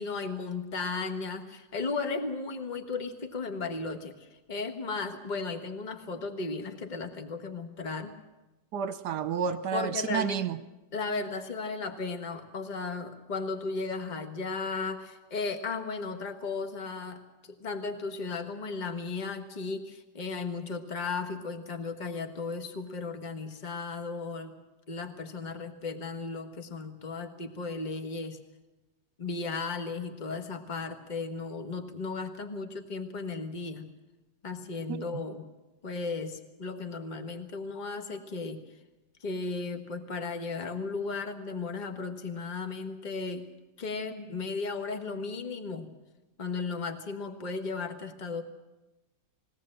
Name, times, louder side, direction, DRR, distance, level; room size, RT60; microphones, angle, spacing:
voice 1, 0.0-8.1 9.7-10.4 10.9-24.5 24.9-28.4 29.2-33.9 34.4-35.5 35.8-38.6 39.2-43.5 43.8-45.9 46.4-48.4, left 4 dB, 25° left, 1.5 m, -35 dB
voice 2, 8.7-10.6 34.9-35.0, right 7 dB, 70° right, 1.4 m, -30 dB
21.5 x 17.5 x 7.7 m
omnidirectional pair, 1.9 m